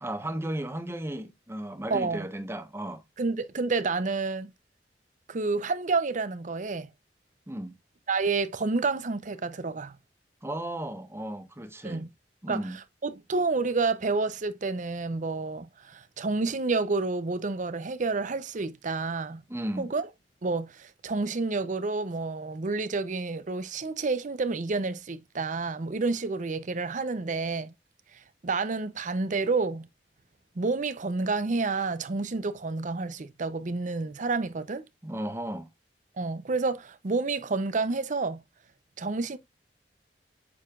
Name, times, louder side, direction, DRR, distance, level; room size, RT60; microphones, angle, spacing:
voice 1, 0.0-3.0 7.5-7.7 10.4-12.0 12.4-12.8 19.5-19.9 35.0-35.7, right 1 dB, 15° right, 1.0 m, -35 dB
voice 2, 1.9-2.3 3.2-4.5 5.3-6.9 8.1-9.9 11.8-12.1 12.5-12.6 13.0-19.4 19.8-20.1 20.4-27.7 28.4-29.9 30.6-34.8 36.2-38.4 39.0-39.4, right 3 dB, 45° right, 0.6 m, -29 dB
7.1 x 6.8 x 2.4 m
head